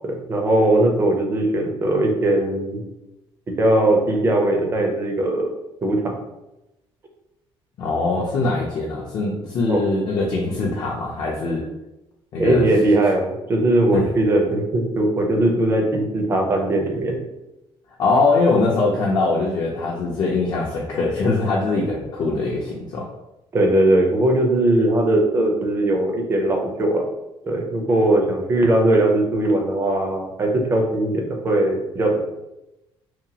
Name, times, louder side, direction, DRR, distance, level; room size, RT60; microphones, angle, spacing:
voice 1, 0.1-2.8 3.6-5.5 5.8-6.1 9.7-9.8 12.4-17.2 23.5-27.0 27.4-32.2, right 1 dB, 25° right, 2 dB, 0.5 m, -19 dB
voice 2, 7.8-11.6 12.3-12.7 13.9-14.1 18.0-23.1, left 3 dB, 45° left, -3 dB, 0.4 m, -22 dB
2.8 x 2.3 x 2.7 m, 0.94 s
cardioid pair, 160°, 10 cm